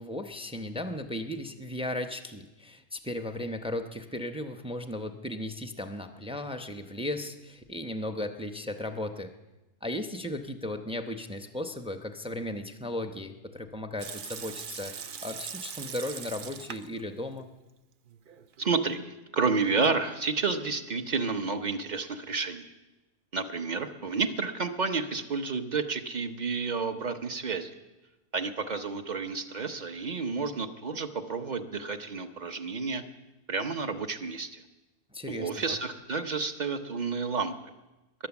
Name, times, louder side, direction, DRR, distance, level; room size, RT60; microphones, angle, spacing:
voice 1, 0.0-9.3 9.8-17.5 35.1-35.8, left 1 dB, 10° right, 6 dB, 0.3 m, -36 dB
Water tap faucet / Sink (filling or washing) / Liquid, 14.0-17.0 17.3-17.4 18.1-18.7, right 7 dB, 80° right, 0.4 m, -41 dB
voice 2, 18.6-22.7 23.3-27.7 28.3-33.0 33.5-34.6 35.3-37.5, right 4 dB, 40° right, 8 dB, 0.7 m, -30 dB
21.5 x 8.8 x 7.1 m, 1.0 s
omnidirectional pair, 1.7 m